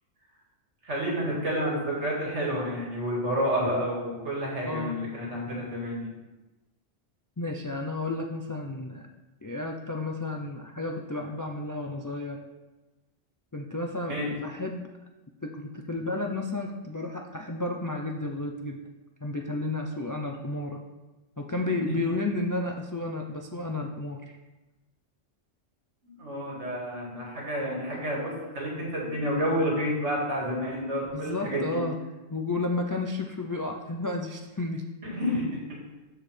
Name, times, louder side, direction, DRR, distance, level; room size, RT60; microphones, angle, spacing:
voice 1, 0.8-6.1 14.1-14.3 21.7-22.0 26.0-31.8 35.1-35.6, equal, 70° right, -4 dB, 2.4 m, -30 dB
voice 2, 7.4-9.1 9.4-12.4 13.5-14.9 15.4-18.9 19.2-20.8 21.4-24.4 31.1-32.0 32.3-34.8, left 2 dB, 30° left, 1 dB, 0.3 m, -32 dB
13.0 x 4.7 x 3.4 m, 1.1 s
omnidirectional pair, 1.2 m